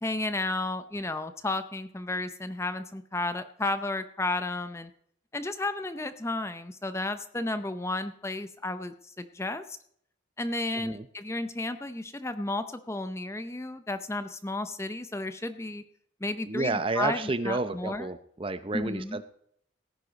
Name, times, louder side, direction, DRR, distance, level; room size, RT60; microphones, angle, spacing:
voice 1, 0.0-4.9 5.3-9.8 10.4-15.8 16.2-18.1 18.7-19.2, left 2 dB, 15° left, 10 dB, 0.6 m, -33 dB
voice 2, 10.7-11.1 16.4-19.2, right 2 dB, 25° right, 12 dB, 0.7 m, -30 dB
17.5 x 10.0 x 4.0 m, 0.66 s
head